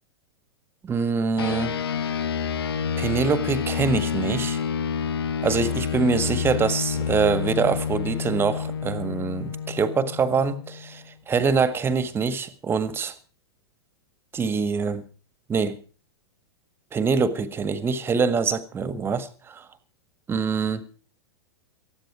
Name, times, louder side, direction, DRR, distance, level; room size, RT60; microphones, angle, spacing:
voice 1, 0.8-1.8 3.0-4.6 5.4-13.1 14.3-15.0 15.5-15.8 16.9-19.6 20.3-20.9, right 5 dB, 15° right, 1.7 m, -24 dB
sound 1, 1.4-11.1, left 7 dB, 65° left, 1.2 m, -28 dB
19.0 x 14.0 x 4.9 m
figure-of-eight pair, 100°, 14 cm